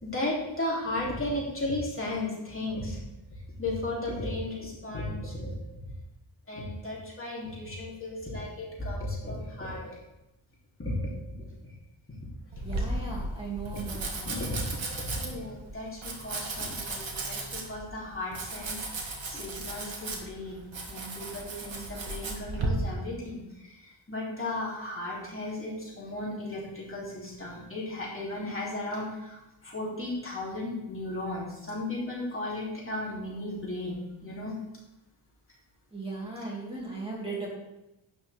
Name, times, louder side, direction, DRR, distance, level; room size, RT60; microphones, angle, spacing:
voice 1, 0.0-3.0 3.6-5.5 6.5-10.0 10.8-11.1 13.0-13.1 13.8-14.0 14.2-14.8 15.1-18.8 19.3-29.4 29.6-34.6, left 1 dB, 25° left, -4 dB, 3.1 m, -35 dB
Domestic sounds home sounds, 12.5-22.7, right 2 dB, 65° right, 2.1 m, -36 dB
voice 2, 12.6-14.3 35.9-37.5, right 3 dB, 10° right, -5 dB, 2.6 m, -37 dB
12.0 x 9.2 x 3.5 m, 0.94 s
wide cardioid pair, 160°, 49 cm